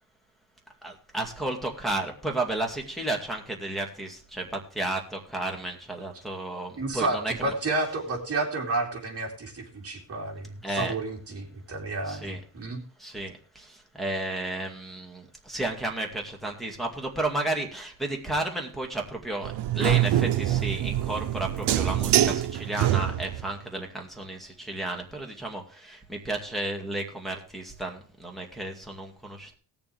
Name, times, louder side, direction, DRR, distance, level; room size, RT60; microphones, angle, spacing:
voice 1, 0.8-7.5 10.6-10.9 12.1-12.4 13.0-29.6, right 2 dB, ahead, 0 dB, 2.2 m, -33 dB
voice 2, 6.8-12.8, right 2 dB, 35° right, 0 dB, 2.9 m, -31 dB
sound 1, 19.4-23.5, right 12 dB, 75° right, 0.9 m, -25 dB
18.5 x 7.0 x 3.4 m, 0.40 s
cardioid pair, 135°, 41 cm